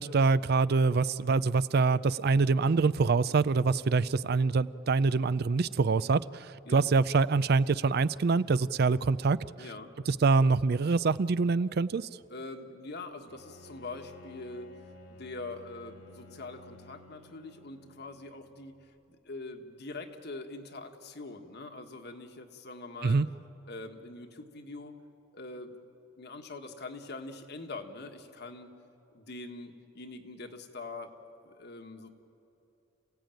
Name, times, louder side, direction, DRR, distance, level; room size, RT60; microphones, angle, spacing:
voice 1, 0.0-9.4 10.1-12.1 23.0-23.3, right 4 dB, 55° right, 17 dB, 0.5 m, -25 dB
voice 2, 9.6-9.9 12.3-14.7 15.1-18.7 19.2-23.2 23.7-24.9 25.3-25.7 26.2-28.7 29.1-31.1 31.4-32.1, left 3 dB, 55° left, 5 dB, 1.6 m, -43 dB
Bowed string instrument, 13.3-18.6, left 2 dB, 75° left, 2.1 m, -53 dB
28.5 x 16.5 x 9.1 m, 2.9 s
head